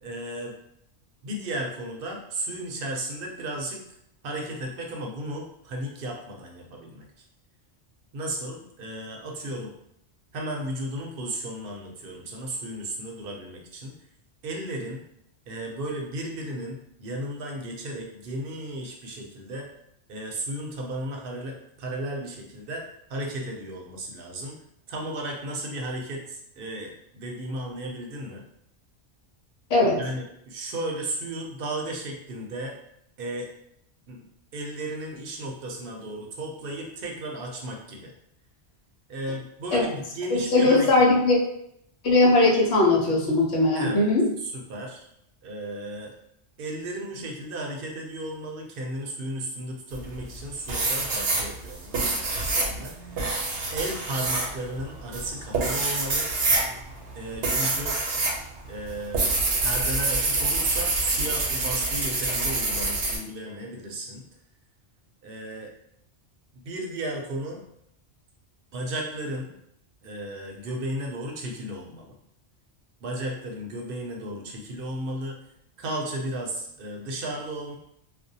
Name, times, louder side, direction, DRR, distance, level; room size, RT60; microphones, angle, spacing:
voice 1, 0.0-0.5 1.2-4.0 4.2-7.1 8.1-9.7 10.3-13.9 14.4-15.0 15.5-19.7 20.1-24.6 24.9-28.4 30.0-32.8 33.2-33.5 34.1-34.2 34.5-38.1 39.1-40.9 43.7-44.1 44.4-45.0 45.4-46.1 46.6-53.2 53.7-56.3 57.1-58.0 58.7-59.3 59.6-64.2 65.2-65.7 66.5-67.6 68.7-69.5 70.0-72.1 73.0-75.4 75.8-77.8, right 1 dB, 65° right, 0 dB, 0.7 m, -34 dB
voice 2, 29.7-30.0 39.7-39.9 40.5-41.4 42.0-44.3, left 2 dB, 80° left, -1 dB, 0.9 m, -19 dB
sound 1, 49.9-50.4 50.7-58.4 58.7-63.2, right 3 dB, 85° right, 0.9 m, -26 dB
2.5 x 2.1 x 2.6 m, 0.75 s
omnidirectional pair, 1.1 m